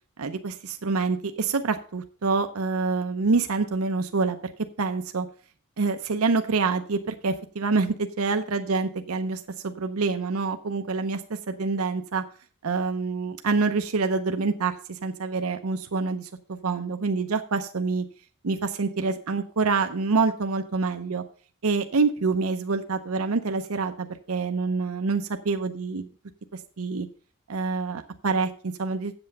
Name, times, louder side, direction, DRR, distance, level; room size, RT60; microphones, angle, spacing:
voice 1, 0.2-4.4 4.8-5.3 5.8-12.2 12.6-18.0 18.4-21.2 21.6-26.1 26.8-27.1 27.5-29.1, right 4 dB, 80° right, 7 dB, 0.7 m, -26 dB
8.0 x 7.7 x 5.5 m, 0.40 s
head